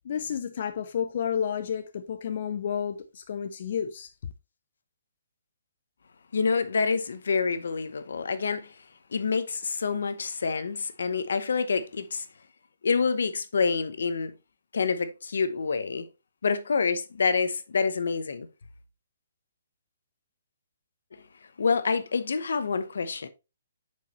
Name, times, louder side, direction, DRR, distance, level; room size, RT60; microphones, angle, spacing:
voice 1, 0.0-4.1, left 8 dB, 45° left, 0.5 m, -31 dB
voice 2, 6.3-8.7 9.1-12.3 12.8-14.3 14.7-16.1 16.4-18.5 21.6-23.3, left 5 dB, 80° left, 0.8 m, -27 dB
6.9 x 4.8 x 3.0 m
hypercardioid pair, 165°, 0 cm